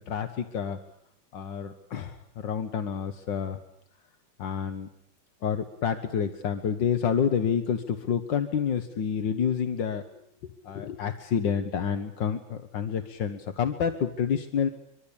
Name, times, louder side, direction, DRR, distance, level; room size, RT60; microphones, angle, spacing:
voice 1, 0.1-0.8 1.3-3.6 4.4-4.9 5.4-10.0 10.7-14.7, left 7 dB, 75° left, 8 dB, 1.9 m, -28 dB
24.5 x 23.5 x 8.7 m, 0.71 s
omnidirectional pair, 2.0 m